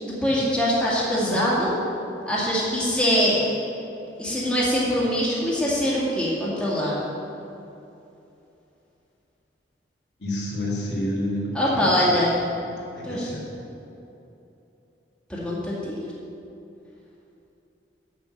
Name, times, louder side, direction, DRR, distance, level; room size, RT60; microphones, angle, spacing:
voice 1, 0.0-1.8 2.2-3.4 4.2-7.0 11.5-12.3 13.0-13.3 15.3-16.0, equal, 5° left, -7 dB, 2.0 m, -23 dB
voice 2, 10.2-12.2 12.9-13.5, left 1 dB, 75° left, -4 dB, 2.2 m, -29 dB
7.1 x 7.0 x 7.7 m, 2.8 s
head